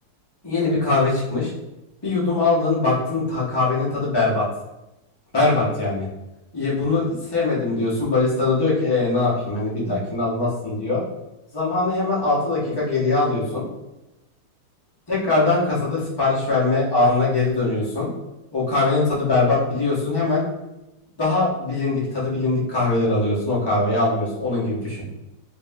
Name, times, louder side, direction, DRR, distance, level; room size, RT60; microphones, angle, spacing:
voice 1, 0.4-1.5 2.0-4.4 5.3-6.0 6.5-11.0 11.5-13.6 15.1-18.1 18.5-20.4 21.2-25.0, left 3 dB, 25° left, -7 dB, 0.5 m, -21 dB
3.4 x 2.7 x 3.5 m, 0.95 s
omnidirectional pair, 2.4 m